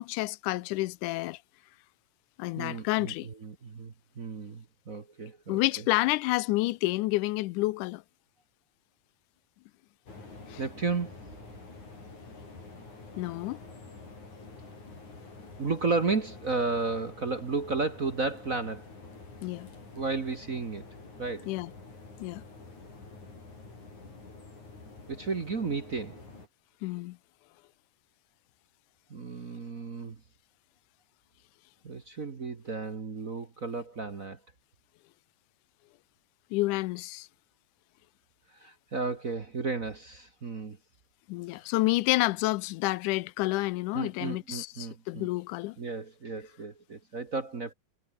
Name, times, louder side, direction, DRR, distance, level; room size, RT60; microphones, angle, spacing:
voice 1, 0.0-1.4 2.4-3.3 5.5-8.0 10.5-10.6 13.2-13.6 19.4-19.7 21.5-21.7 22.2-22.4 26.8-27.2 36.5-37.3 41.3-45.8, left 19 dB, 90° left, 2.1 m, -29 dB
voice 2, 2.6-5.6 10.6-11.1 15.6-18.9 19.9-20.8 21.2-21.5 25.1-26.2 29.1-30.1 31.8-34.4 38.6-40.8 43.9-45.3 45.8-47.7, right 4 dB, 35° right, 1.4 m, -33 dB
sound 1, 10.0-26.5, left 3 dB, 70° left, 9.4 m, -48 dB
omnidirectional pair, 3.5 m